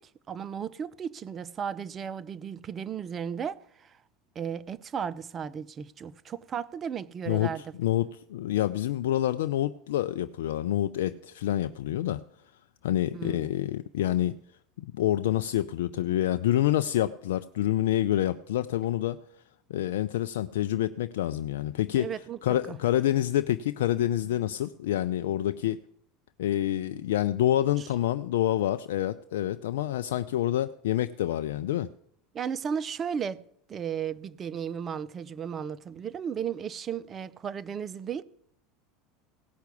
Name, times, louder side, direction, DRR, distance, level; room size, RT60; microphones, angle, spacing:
voice 1, 0.3-4.0 4.3-7.6 13.1-13.5 22.0-22.8 27.8-27.9 32.3-33.4 33.7-38.2, right 7 dB, 35° right, 0.7 m, -35 dB
voice 2, 7.3-12.2 12.8-14.3 14.8-19.2 19.7-22.1 22.4-25.8 26.4-31.9, left 12 dB, 75° left, 0.4 m, -27 dB
17.0 x 5.8 x 8.3 m
hypercardioid pair, 85°, 0 cm